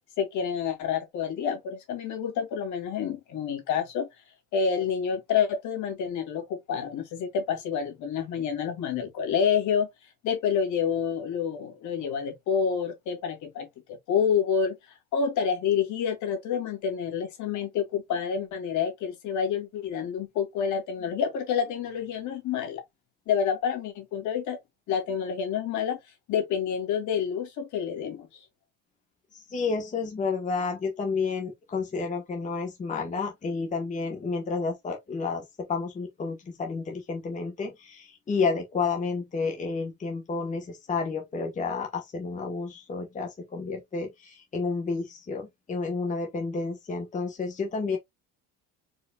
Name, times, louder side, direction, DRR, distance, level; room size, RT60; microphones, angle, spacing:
voice 1, 0.2-4.1 4.5-9.9 10.2-13.7 14.1-22.8 23.3-24.6 24.9-26.0 26.3-28.4, left 7 dB, 60° left, 2.3 m, -28 dB
voice 2, 29.3-48.0, left 4 dB, 20° left, 1.1 m, -31 dB
4.6 x 4.0 x 2.3 m
cardioid pair, 125°, 34 cm